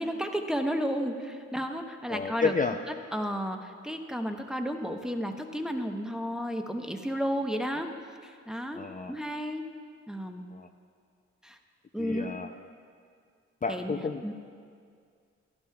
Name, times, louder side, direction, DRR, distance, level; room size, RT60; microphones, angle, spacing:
voice 1, 0.0-2.5 2.9-7.9 8.2-8.8 9.1-9.6 10.1-10.5 11.4-11.6 11.9-12.3 13.7-14.3, equal, ahead, 4 dB, 0.9 m, -32 dB
voice 2, 2.1-2.8 8.7-9.1 10.5-10.7 12.0-12.5 13.6-14.3, left 4 dB, 30° left, 4 dB, 0.5 m, -31 dB
15.0 x 11.0 x 2.3 m, 2.2 s
supercardioid pair, 45°, 29 cm